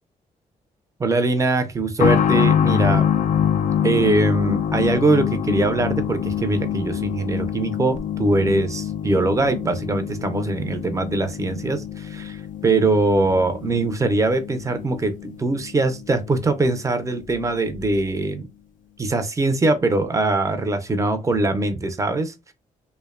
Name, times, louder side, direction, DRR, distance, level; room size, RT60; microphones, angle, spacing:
voice 1, 1.0-3.0 3.8-18.5 19.0-22.5, right 2 dB, 20° right, 0.5 m, -22 dB
sound 1, 2.0-16.4 16.7-16.8 17.7-17.9, left 9 dB, 55° left, 0.4 m, -25 dB
2.6 x 2.1 x 2.4 m
supercardioid pair, 60°, 16 cm